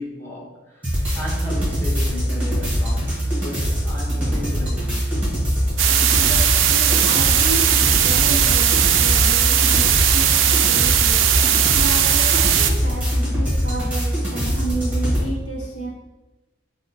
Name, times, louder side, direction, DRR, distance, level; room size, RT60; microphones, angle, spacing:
voice 1, 0.0-5.3, left 1 dB, 15° left, -6 dB, 0.8 m, -35 dB
sound 1, 0.8-15.3, equal, 10° right, 1.1 m, -22 dB
sound 2, 5.8-12.7, right 10 dB, 90° right, 0.3 m, -18 dB
voice 2, 6.2-11.3 11.7-15.9, right 1 dB, 75° left, -3 dB, 0.7 m, -31 dB
3.5 x 2.1 x 3.9 m, 1.1 s
head